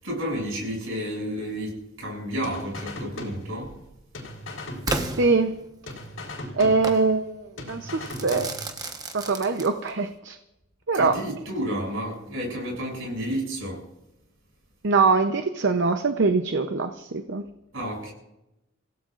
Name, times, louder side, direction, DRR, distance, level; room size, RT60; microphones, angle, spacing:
voice 1, 0.0-3.7 10.9-13.8 17.7-18.1, equal, 80° right, 6.9 m, -31 dB
sound 1, 2.4-3.9 4.1-5.6 5.9-7.3 7.6-8.9, left 1 dB, 70° left, 4.2 m, -38 dB
Crackle / Fireworks, 4.9-6.0 6.8-7.1 8.1-10.1, right 2 dB, 20° right, 1.1 m, -32 dB
voice 2, 5.2-5.5 6.6-8.5 9.1-10.4 10.9-11.2 14.8-17.4, right 4 dB, 60° right, 0.7 m, -23 dB
29.5 x 16.0 x 2.5 m
head